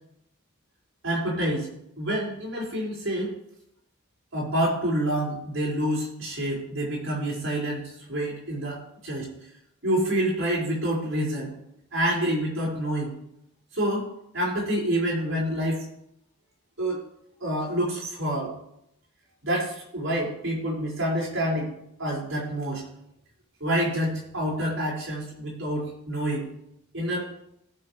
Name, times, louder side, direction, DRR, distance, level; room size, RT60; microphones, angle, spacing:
voice 1, 1.0-1.7 2.0-3.3 4.3-9.3 9.8-11.5 11.9-13.1 13.7-14.1 14.3-15.9 16.8-17.0 17.4-18.5 19.4-21.7 22.0-22.8 23.6-26.5 26.9-27.3, right 1 dB, 60° right, -5 dB, 5.5 m, -27 dB
19.5 x 7.0 x 3.3 m, 0.77 s
head